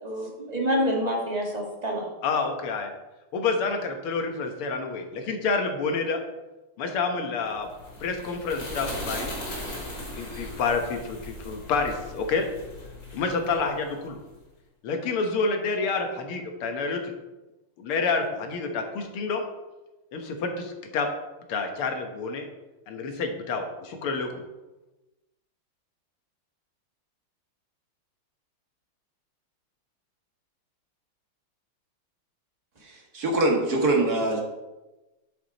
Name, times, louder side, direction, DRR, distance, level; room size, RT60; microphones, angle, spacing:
voice 1, 0.0-2.1, equal, 20° right, -1 dB, 1.8 m, -27 dB
voice 2, 2.2-2.9 3.3-6.2 6.8-7.7 8.0-9.3 10.1-12.4 13.1-14.2 14.8-17.1 17.8-19.5 20.1-21.1 21.5-22.5 22.9-24.4, left 4 dB, 80° left, 4 dB, 2.1 m, -28 dB
sound 1, 7.5-14.2, left 1 dB, 40° left, 3.0 m, -38 dB
voice 3, 32.8-34.4, right 2 dB, 45° right, 0 dB, 2.1 m, -24 dB
8.8 x 8.2 x 4.1 m, 1.1 s
omnidirectional pair, 2.4 m